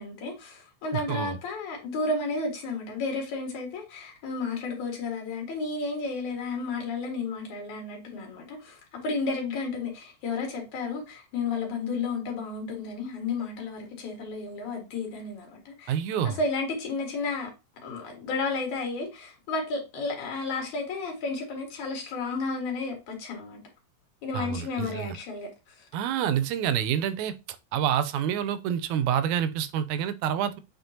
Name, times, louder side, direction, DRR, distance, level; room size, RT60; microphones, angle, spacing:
voice 1, 0.0-16.0 16.2-17.5 17.8-23.6 24.2-25.9, left 3 dB, 80° left, 3.2 m, -32 dB
voice 2, 0.9-1.4 15.9-16.4 24.3-25.2 25.9-27.3 27.7-30.6, right 9 dB, 85° right, 2.0 m, -27 dB
7.9 x 4.5 x 2.8 m
omnidirectional pair, 3.3 m